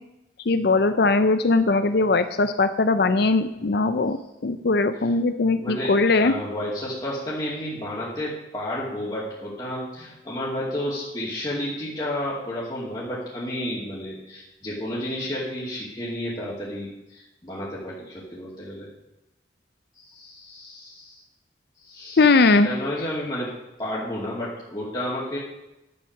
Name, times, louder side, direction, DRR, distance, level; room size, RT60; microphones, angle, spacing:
voice 1, 0.5-4.2 4.4-6.3 22.2-22.7, left 3 dB, 60° left, 10 dB, 0.5 m, -20 dB
voice 2, 5.5-18.9 19.9-21.2 21.8-22.3 22.6-25.4, left 1 dB, 25° left, -7 dB, 2.5 m, -31 dB
11.0 x 8.6 x 6.6 m, 0.94 s
head